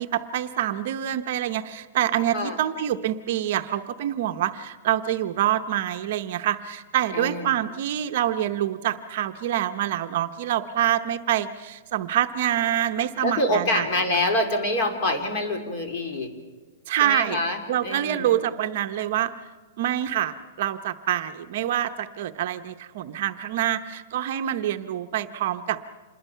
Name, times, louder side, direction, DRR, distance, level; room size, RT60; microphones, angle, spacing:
voice 1, 0.0-13.9 16.9-17.4 17.7-19.3 19.8-25.8, right 11 dB, 45° right, 7 dB, 0.8 m, -26 dB
voice 2, 7.1-7.5 13.2-16.3 17.0-18.4, left 1 dB, 30° left, 4 dB, 2.7 m, -26 dB
27.0 x 21.5 x 5.7 m, 1.3 s
hypercardioid pair, 170°, 0 cm